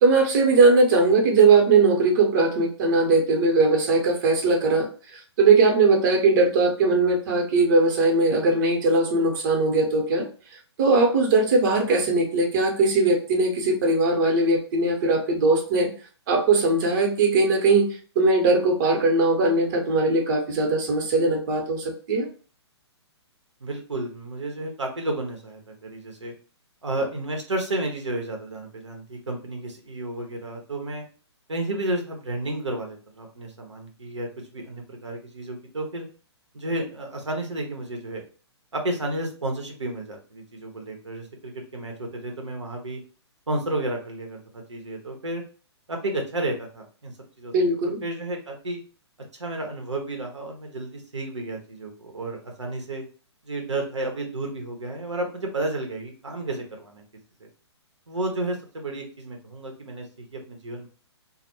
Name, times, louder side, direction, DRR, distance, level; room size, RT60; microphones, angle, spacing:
voice 1, 0.0-4.9 5.4-10.3 10.8-15.9 16.3-17.9 18.2-22.3 47.5-48.0, right 3 dB, 45° right, 1 dB, 0.7 m, -20 dB
voice 2, 23.6-26.3 26.8-31.0 31.5-36.1 36.5-38.2 38.7-43.0 43.5-44.4 44.7-45.4 45.9-47.5 47.8-48.8 49.4-53.0 53.4-57.0 57.4-57.5 58.1-60.9, right 1 dB, 85° right, 2 dB, 0.7 m, -32 dB
2.1 x 2.0 x 2.9 m, 0.38 s
figure-of-eight pair, 125°, 15 cm